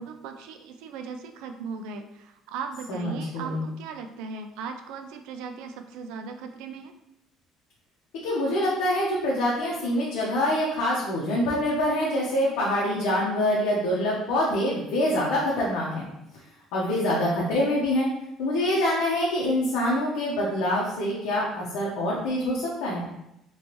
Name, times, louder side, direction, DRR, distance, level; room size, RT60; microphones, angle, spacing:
voice 1, 0.0-6.9, right 5 dB, 80° right, 6 dB, 0.3 m, -38 dB
voice 2, 2.9-3.7 8.2-16.1 16.3-16.4 16.7-18.1 18.4-23.1, left 1 dB, 85° left, -5 dB, 0.8 m, -25 dB
3.2 x 3.0 x 2.9 m, 0.83 s
cardioid pair, 180°, 0 cm